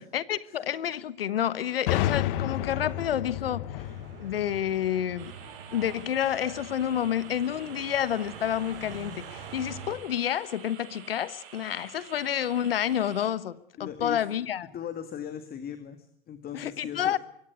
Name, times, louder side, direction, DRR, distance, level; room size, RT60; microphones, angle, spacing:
voice 1, 0.1-3.7 4.2-5.3 5.7-14.7 16.5-17.2, left 10 dB, 80° left, 1.2 m, -29 dB
sound 1, 1.9-5.5, left 13 dB, 60° left, 1.2 m, -31 dB
sound 2, 3.7-9.9, right 5 dB, 70° right, 7.5 m, -45 dB
sound 3, 5.2-13.3, right 8 dB, 50° right, 6.7 m, -49 dB
voice 2, 13.8-14.2 14.7-17.2, left 8 dB, 30° left, 2.1 m, -38 dB
23.5 x 17.0 x 9.5 m
hypercardioid pair, 90°, 29 cm